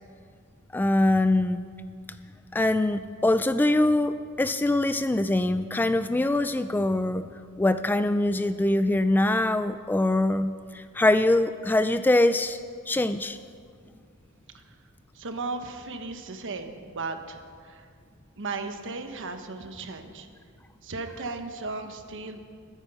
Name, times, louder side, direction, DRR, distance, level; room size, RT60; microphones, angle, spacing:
voice 1, 0.7-1.6 2.5-7.3 7.6-12.6 12.9-13.4, left 1 dB, 10° left, 11 dB, 0.3 m, -23 dB
voice 2, 15.1-17.9 18.4-20.3 20.8-22.4, right 3 dB, 60° right, 7 dB, 1.2 m, -36 dB
21.0 x 9.7 x 5.5 m, 2.1 s
head